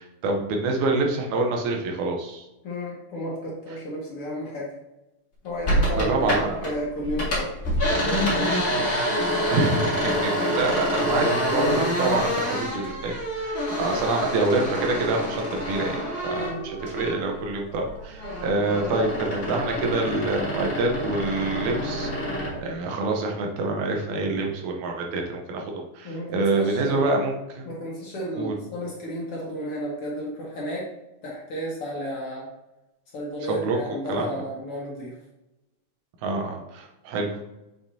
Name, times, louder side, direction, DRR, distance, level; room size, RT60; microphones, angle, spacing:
voice 1, 0.0-2.5 5.8-6.7 9.5-16.5 16.8-22.1 22.6-27.7 28.4-28.5 33.5-33.8 34.1-34.4 36.2-37.4, right 3 dB, 75° right, 1 dB, 2.4 m, -26 dB
voice 2, 2.6-4.7 5.4-7.5 7.9-8.5 16.3-16.6 26.0-27.1 27.7-30.9 31.2-32.5 33.1-35.2, equal, 55° left, -4 dB, 2.0 m, -32 dB
sound 1, 5.6-6.7 7.0-17.4 17.7-22.6, equal, 30° left, 2.0 m, -27 dB
7.3 x 5.8 x 2.8 m, 0.94 s
omnidirectional pair, 3.6 m